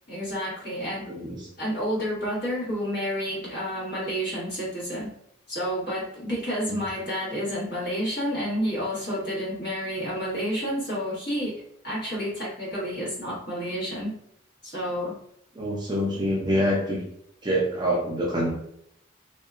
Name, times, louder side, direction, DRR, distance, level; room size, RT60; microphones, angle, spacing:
voice 1, 0.1-1.1 1.6-5.1 5.5-11.5 11.8-14.2 14.6-15.2, equal, 50° left, -8 dB, 1.3 m, -30 dB
voice 2, 1.1-1.5 6.7-6.8 15.6-17.0 17.4-18.5, equal, 20° right, -3 dB, 0.4 m, -26 dB
2.7 x 2.2 x 2.4 m, 0.74 s
head